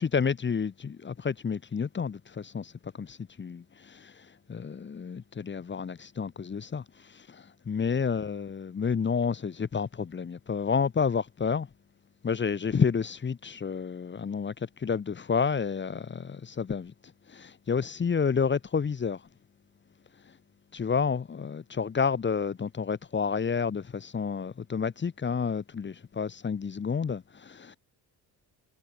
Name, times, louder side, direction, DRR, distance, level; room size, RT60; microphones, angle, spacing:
voice 1, 0.0-2.7 3.0-11.7 12.2-16.9 17.3-19.2 20.7-27.8, left 6 dB, 30° left, 1.3 m, -30 dB
cardioid pair, 150°, 39 cm